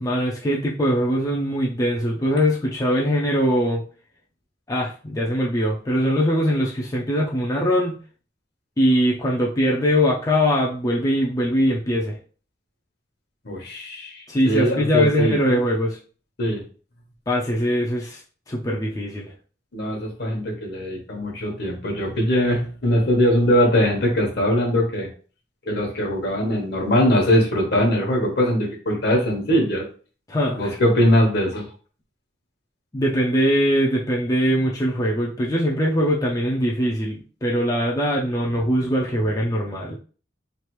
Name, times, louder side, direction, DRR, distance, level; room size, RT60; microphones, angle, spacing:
voice 1, 0.0-3.8 4.7-7.9 8.8-12.2 14.3-16.0 17.3-18.2 18.5-19.3 30.3-30.8 32.9-40.0, equal, 20° left, -3 dB, 0.4 m, -22 dB
voice 2, 13.4-15.6 16.4-16.6 19.7-25.1 25.7-29.9 30.6-31.7, equal, 60° left, 1 dB, 1.0 m, -21 dB
3.2 x 2.4 x 3.0 m, 0.39 s
head